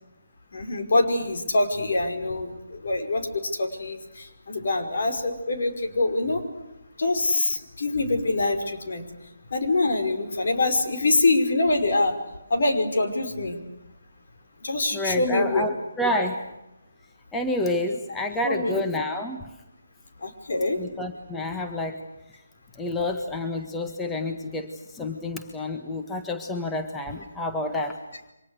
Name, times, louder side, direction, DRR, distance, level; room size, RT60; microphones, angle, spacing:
voice 1, 0.5-6.4 7.0-9.0 9.5-12.2 12.5-13.6 14.6-15.7 18.4-18.8 20.2-20.8, left 2 dB, 55° left, 5 dB, 5.3 m, -24 dB
voice 2, 14.9-16.4 17.3-19.5 20.8-22.0 22.8-28.0, left 1 dB, 10° left, 4 dB, 1.6 m, -29 dB
29.0 x 25.0 x 6.6 m, 0.93 s
figure-of-eight pair, 145°, 0 cm